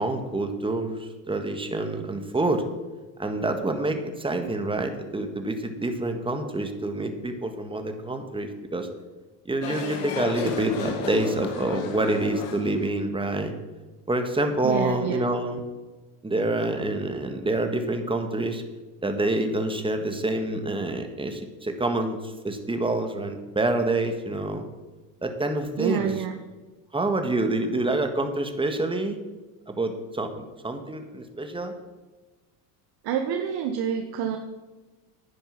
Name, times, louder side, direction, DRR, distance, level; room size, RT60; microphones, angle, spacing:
voice 1, 0.0-2.6 3.2-8.9 9.5-13.5 14.1-15.6 16.2-18.6 19.0-24.7 25.2-26.1 26.9-29.2 29.7-31.7, right 2 dB, 10° right, 6 dB, 1.8 m, -27 dB
sound 1, 9.6-12.9, left 5 dB, 70° left, 2.1 m, -32 dB
voice 2, 14.6-15.2 25.8-26.4 33.0-34.4, right 8 dB, 50° right, 5 dB, 1.3 m, -27 dB
10.0 x 9.9 x 5.9 m, 1.2 s
hypercardioid pair, 90°, 48 cm